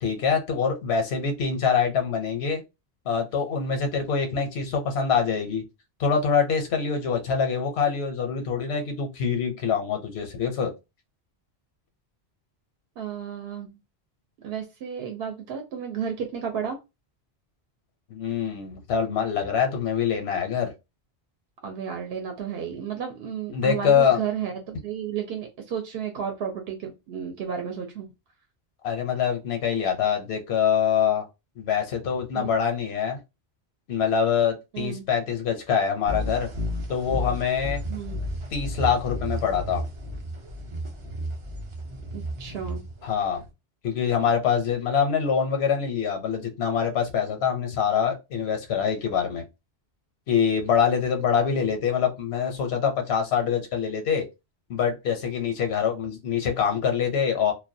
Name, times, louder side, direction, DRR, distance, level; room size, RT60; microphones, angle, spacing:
voice 1, 0.0-2.6 3.0-5.6 6.0-10.7 18.1-20.7 23.5-24.2 28.8-31.3 31.6-33.2 33.9-36.5 36.9-37.8 38.5-39.8 43.0-43.4 43.8-49.4 50.3-54.2 54.7-57.5, left 7 dB, 85° left, 0.9 m, -25 dB
voice 2, 13.0-13.8 14.4-16.8 21.6-28.1 32.3-32.5 34.7-35.1 37.9-38.2 42.1-42.8, right 8 dB, 75° right, 0.8 m, -32 dB
sound 1, 36.1-43.5, equal, 45° right, 0.4 m, -32 dB
2.2 x 2.2 x 2.6 m
omnidirectional pair, 1.0 m